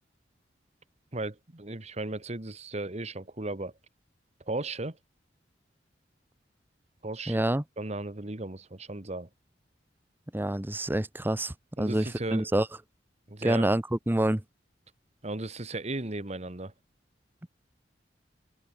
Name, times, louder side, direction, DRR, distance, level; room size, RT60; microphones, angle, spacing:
voice 1, 1.1-3.7 4.5-5.0 7.0-7.4 7.8-9.3 11.8-12.5 13.3-13.7 15.2-16.7, right 2 dB, 40° right, 1.6 m, -35 dB
voice 2, 7.3-7.6 10.3-12.7 13.4-14.4, right 1 dB, 10° right, 0.7 m, -27 dB
open air
head